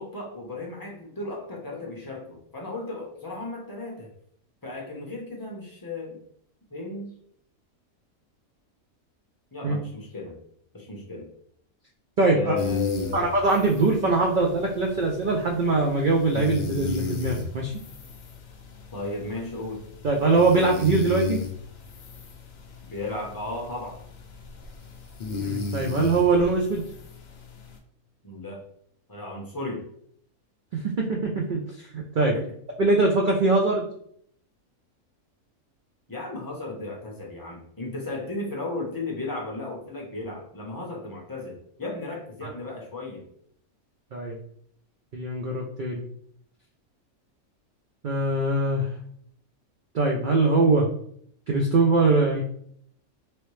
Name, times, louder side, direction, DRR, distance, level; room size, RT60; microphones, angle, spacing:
voice 1, 0.0-4.1 4.6-6.2 6.7-7.2 9.5-10.4 10.7-11.3 12.3-13.2 18.9-19.8 22.8-24.0 28.2-28.6 29.1-29.9 32.3-32.5 36.1-43.2, left 2 dB, 20° left, -2 dB, 0.5 m, -35 dB
voice 2, 12.2-12.5 13.1-17.7 20.0-21.4 25.4-26.8 30.7-31.6 31.9-32.3 32.8-33.8 44.1-44.4 45.1-46.0 48.0-48.9 49.9-50.9 51.5-52.4, right 3 dB, 90° right, 0 dB, 0.4 m, -22 dB
sound 1, 12.6-27.8, left 4 dB, 75° left, 0.4 m, -35 dB
3.1 x 2.8 x 3.1 m, 0.65 s
omnidirectional pair, 1.4 m